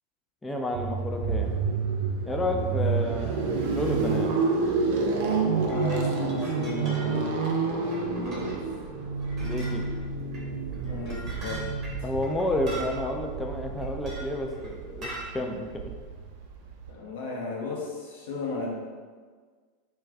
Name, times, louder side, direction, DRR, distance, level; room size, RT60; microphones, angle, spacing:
voice 1, 0.4-1.5 2.2-4.3 9.4-9.8 12.0-15.9, left 1 dB, 10° left, 2 dB, 0.3 m, -30 dB
sound 1, 0.7-16.9, right 4 dB, 60° right, 0.4 m, -29 dB
voice 2, 2.4-3.0 5.5-7.3 7.6-8.6 10.8-11.6 12.0-12.1 16.9-18.8, left 3 dB, 65° left, -3 dB, 0.7 m, -36 dB
sound 2, 5.5-7.1 7.4-7.5 7.8-8.5 9.2-9.9 10.3-10.4 10.7-13.0 13.8-14.7 15.0-15.3, right 2 dB, 35° right, 0.9 m, -41 dB
2.3 x 2.3 x 3.6 m, 1.6 s
figure-of-eight pair, 85°, 0 cm